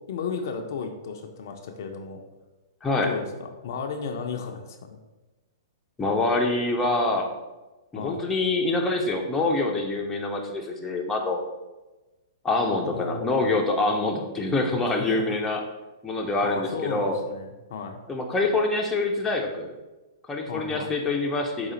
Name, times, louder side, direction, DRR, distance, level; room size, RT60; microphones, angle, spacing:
voice 1, 0.1-2.2 3.0-5.0 7.9-8.2 12.8-13.5 15.0-15.4 16.4-18.0 20.5-20.9, left 5 dB, 55° left, 4 dB, 0.5 m, -34 dB
voice 2, 2.8-3.1 6.0-7.3 7.9-11.4 12.4-15.6 16.0-17.2 18.1-19.7 20.3-21.7, left 2 dB, 15° left, 1 dB, 0.6 m, -25 dB
4.9 x 2.4 x 4.1 m, 1.1 s
figure-of-eight pair, 110°, 2 cm